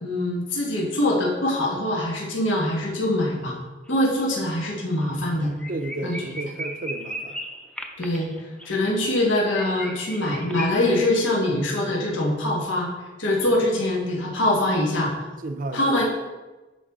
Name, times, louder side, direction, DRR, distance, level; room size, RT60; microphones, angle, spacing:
voice 1, 0.0-3.6 3.9-5.5 6.0-6.3 8.0-8.3 8.6-12.9 13.2-15.1 15.7-16.0, left 1 dB, 85° left, -2 dB, 1.6 m, -23 dB
sound 1, 3.9-4.2 4.5-4.6 5.0-5.1 5.4-10.7, equal, 5° left, 0.6 m, -37 dB
voice 2, 5.7-7.4 15.4-15.9, right 2 dB, 45° right, 7 dB, 0.5 m, -32 dB
12.0 x 4.6 x 3.6 m, 1.2 s
head